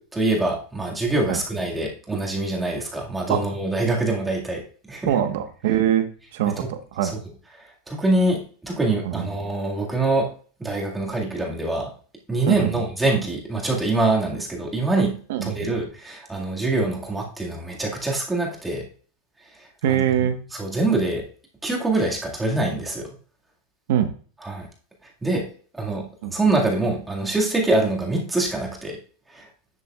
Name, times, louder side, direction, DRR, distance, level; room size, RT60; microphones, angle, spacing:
voice 1, 0.1-5.1 6.6-6.7 7.0-7.1 7.6-10.3 10.6-11.9 12.3-18.8 19.9-21.2 21.6-23.1 24.4-24.7 25.2-25.5 25.7-29.0 29.3-29.5, right 2 dB, 10° right, -2 dB, 1.9 m, -24 dB
voice 2, 5.1-7.1 9.0-9.3 12.5-12.8 15.3-15.7 19.8-20.4 23.9-24.1 26.2-26.3, right 10 dB, 70° right, 8 dB, 1.2 m, -23 dB
11.0 x 6.9 x 2.4 m, 0.42 s
supercardioid pair, 150°, 0 cm